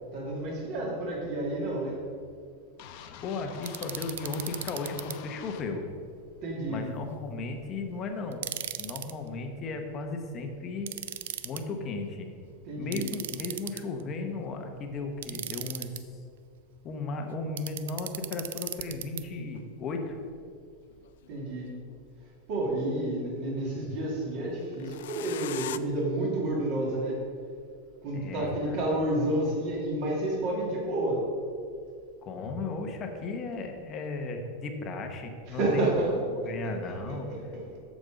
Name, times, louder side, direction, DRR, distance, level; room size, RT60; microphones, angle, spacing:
voice 1, 0.1-2.0 6.4-6.8 12.7-13.0 21.3-21.8 22.5-27.2 28.0-31.3 35.5-36.1 36.4-37.8, right 1 dB, 40° right, -3 dB, 2.4 m, -30 dB
sound 1, 2.8-5.7, left 8 dB, 40° left, 0.6 m, -46 dB
voice 2, 3.2-5.8 6.7-8.4 8.7-10.9 11.4-12.3 12.8-16.1 16.8-20.2 28.1-28.8 32.2-35.9 36.4-37.3, left 3 dB, 25° left, 4 dB, 0.9 m, -35 dB
sound 2, 3.6-5.1 8.3-9.1 10.9-11.6 12.9-14.0 15.2-16.0 17.6-19.2, right 11 dB, 80° right, 0.5 m, -37 dB
sound 3, 19.6-19.7 20.9-22.0 24.7-25.8, left 12 dB, 70° left, 0.3 m, -40 dB
13.5 x 5.2 x 5.1 m, 2.2 s
supercardioid pair, 175°, 0 cm